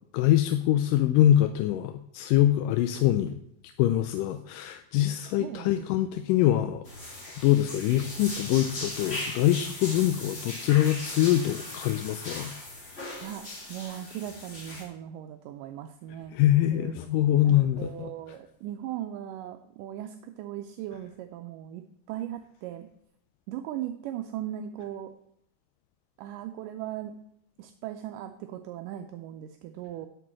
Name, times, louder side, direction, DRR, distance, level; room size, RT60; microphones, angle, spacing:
voice 1, 0.1-3.4 3.6-6.9 7.4-12.5 12.9-13.0 16.3-18.1, left 12 dB, 80° left, 9 dB, 2.2 m, -24 dB
voice 2, 5.4-5.9 6.4-6.5 13.2-16.4 16.7-17.1 17.4-22.9 23.5-25.2 26.2-27.2 27.6-30.1, right 11 dB, 80° right, 7 dB, 2.2 m, -38 dB
sound 1, 6.8-14.8, left 1 dB, 20° left, 2.0 m, -39 dB
8.4 x 6.9 x 7.4 m, 0.73 s
omnidirectional pair, 3.9 m